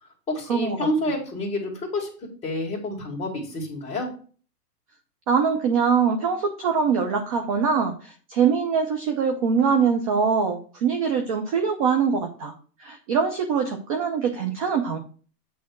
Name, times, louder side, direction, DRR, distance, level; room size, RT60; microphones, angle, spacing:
voice 1, 0.3-2.1 2.4-4.1, left 1 dB, 10° left, -3 dB, 2.3 m, -28 dB
voice 2, 5.3-12.5 12.8-15.0, right 6 dB, 20° right, 4 dB, 0.6 m, -23 dB
8.7 x 3.5 x 6.0 m, 0.39 s
hypercardioid pair, 150°, 48 cm